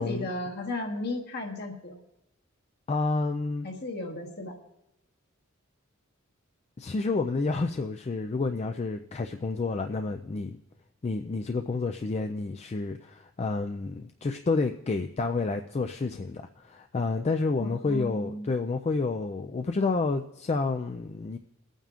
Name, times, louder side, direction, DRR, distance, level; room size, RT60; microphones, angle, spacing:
voice 1, 0.0-2.0 3.6-4.5 17.6-18.5, left 1 dB, 50° left, 2 dB, 1.5 m, -35 dB
voice 2, 2.9-3.7 6.8-10.6 11.0-21.4, left 3 dB, 30° left, 6 dB, 0.4 m, -29 dB
22.5 x 9.0 x 2.5 m, 0.86 s
head